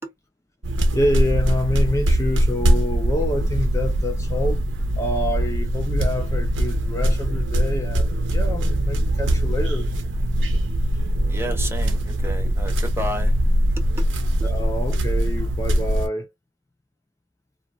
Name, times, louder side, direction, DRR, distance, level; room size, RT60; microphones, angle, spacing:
sound 1, 0.6-16.1, right 1 dB, 70° right, 0.7 m, -22 dB
voice 1, 0.9-4.6 5.0-9.9 10.9-11.0 14.4-16.3, left 1 dB, 15° left, 0.4 m, -27 dB
voice 2, 11.3-13.3 14.0-14.1, right 1 dB, 15° right, 0.8 m, -31 dB
2.9 x 2.4 x 2.2 m
head